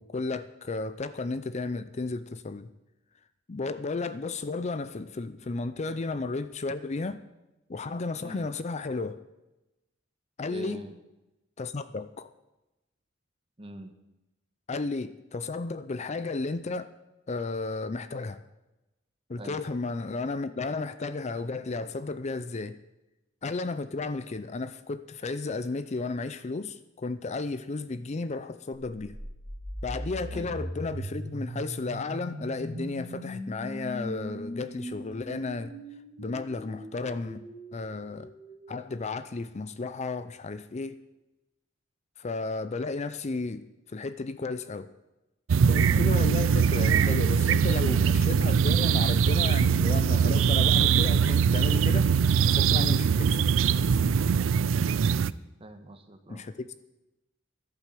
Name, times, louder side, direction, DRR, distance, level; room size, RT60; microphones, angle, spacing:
voice 1, 0.0-2.7 3.5-7.2 7.7-9.2 10.4-10.8 11.6-12.3 14.7-16.9 17.3-18.4 19.3-22.8 23.4-29.2 29.8-35.7 36.2-37.4 37.7-38.3 38.7-41.0 42.2-44.9 45.7-52.1 52.5-53.5 56.3-56.7, left 3 dB, 35° left, 0.5 m, -33 dB
voice 2, 10.5-11.0 13.6-13.9 19.4-19.6 30.3-30.6 55.6-56.4, equal, 30° right, 1.4 m, -43 dB
sound 1, 28.9-38.8, equal, 15° left, 3.3 m, -39 dB
sound 2, 45.5-55.3, right 6 dB, 80° right, 0.4 m, -22 dB
11.5 x 8.8 x 7.5 m
head